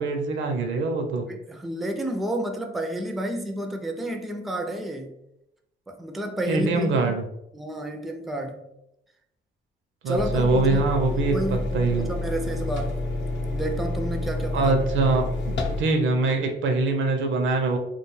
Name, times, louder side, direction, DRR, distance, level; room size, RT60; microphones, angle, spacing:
voice 1, 0.0-1.3 6.5-7.2 10.0-11.4 11.7-12.1 14.5-17.8, right 3 dB, 70° right, 4 dB, 0.5 m, -23 dB
voice 2, 1.3-5.1 5.9-7.1 7.5-8.7 10.1-13.0 13.5-14.7, right 1 dB, ahead, 4 dB, 0.3 m, -31 dB
sound 1, 10.1-15.8, left 2 dB, 65° left, 0.6 m, -28 dB
2.3 x 2.2 x 3.1 m, 0.83 s
cardioid pair, 90°, 20 cm